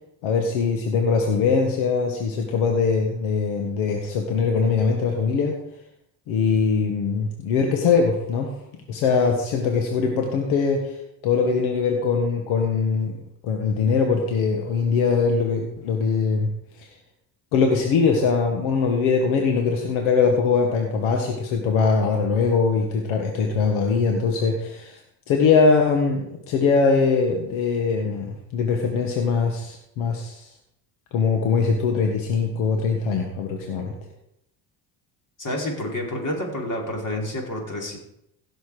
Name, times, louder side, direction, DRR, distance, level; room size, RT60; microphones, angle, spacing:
voice 1, 0.2-5.6 6.3-8.5 8.9-16.5 16.8-16.9 17.5-25.0 25.3-30.5 31.1-33.9, left 5 dB, 80° left, 2 dB, 1.7 m, -22 dB
voice 2, 35.4-38.0, left 1 dB, 40° left, -1 dB, 4.9 m, -29 dB
16.0 x 7.2 x 5.0 m, 0.81 s
supercardioid pair, 70°, 47 cm